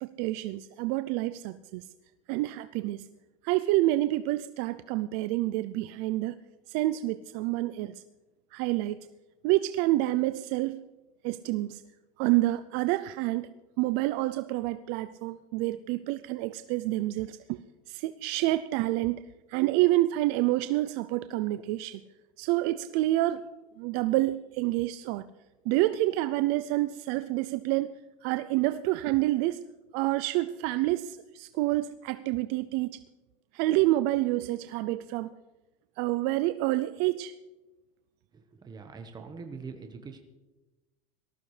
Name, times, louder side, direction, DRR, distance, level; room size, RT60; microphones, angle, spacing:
voice 1, 0.0-1.9 2.3-3.1 3.4-6.4 6.7-8.0 8.5-9.1 9.4-10.8 11.2-11.8 12.2-13.5 13.8-17.6 17.9-19.2 19.5-22.0 22.4-23.5 23.8-25.2 25.7-29.7 29.9-33.0 33.5-35.3 36.0-37.3, right 17 dB, 60° right, 0.5 m, -28 dB
voice 2, 38.3-40.2, right 5 dB, 20° right, 1.3 m, -43 dB
19.0 x 14.0 x 3.3 m
supercardioid pair, 110°, 19 cm